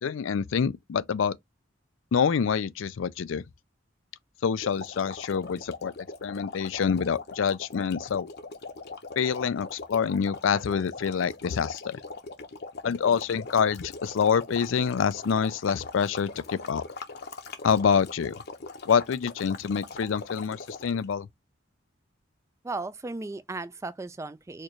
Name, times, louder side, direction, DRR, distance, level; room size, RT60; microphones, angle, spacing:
voice 1, 0.0-1.4 2.1-3.4 4.4-5.9 6.2-8.3 9.2-12.0 12.8-16.8 17.6-18.3 18.8-21.3, left 6 dB, 80° left, 0.4 m, -26 dB
sound 1, 4.6-21.0, left 3 dB, 55° left, 0.8 m, -40 dB
voice 2, 22.6-24.6, right 3 dB, 15° right, 0.3 m, -36 dB
4.4 x 2.5 x 3.0 m
head